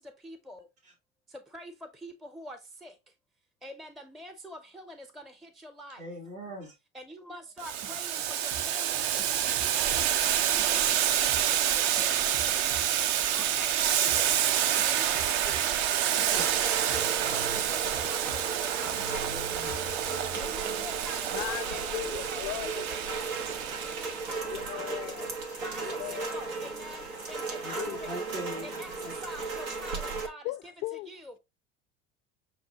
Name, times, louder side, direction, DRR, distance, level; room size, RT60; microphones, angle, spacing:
voice 1, 0.2-0.6 1.5-1.7 2.0-2.9 3.6-5.3 5.6-6.0 6.9-10.7 11.2-12.1 12.6-12.7 13.3-14.3 14.8-19.3 19.5-19.6 20.3-23.3 23.8-24.5 24.9-25.0 25.6-27.0 27.3-27.8 28.1-28.2 28.6-30.4 31.1-31.3, equal, ahead, 0.4 m, -46 dB
voice 2, 6.0-6.7 16.1-16.5 19.1-19.8 20.5-20.9 24.6-24.9 26.9-27.0 27.2-27.4 27.6-29.2, right 1 dB, 75° right, 1.6 m, -43 dB
Boiling, 7.6-24.4, right 11 dB, 55° right, 0.5 m, -28 dB
sound 1, 7.8-10.1 10.4-11.0 11.3-11.4 12.0-20.6, right 4 dB, 40° right, 0.9 m, -45 dB
Rain, 16.3-30.3, right 3 dB, 90° right, 1.0 m, -36 dB
voice 3, 21.3-22.9 24.3-26.3 27.7-28.0 30.4-31.1, left 18 dB, 55° left, 0.5 m, -38 dB
6.3 x 2.1 x 2.8 m
hypercardioid pair, 75°, 41 cm